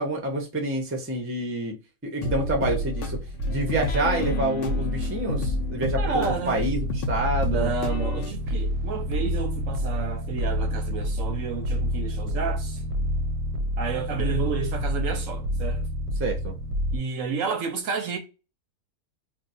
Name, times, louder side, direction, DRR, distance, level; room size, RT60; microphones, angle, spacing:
voice 1, 0.0-1.8 2.0-3.2 3.5-7.7 16.2-16.6, right 2 dB, 15° right, 0.5 m, -28 dB
sound 1, 2.2-8.3, left 2 dB, 80° left, 0.5 m, -31 dB
sound 2, 2.4-17.0, equal, 85° right, 1.1 m, -29 dB
voice 2, 6.0-6.6 7.4-12.8 13.8-15.9 16.9-18.2, right 5 dB, 65° right, 0.9 m, -30 dB
2.6 x 2.3 x 4.0 m
omnidirectional pair, 1.6 m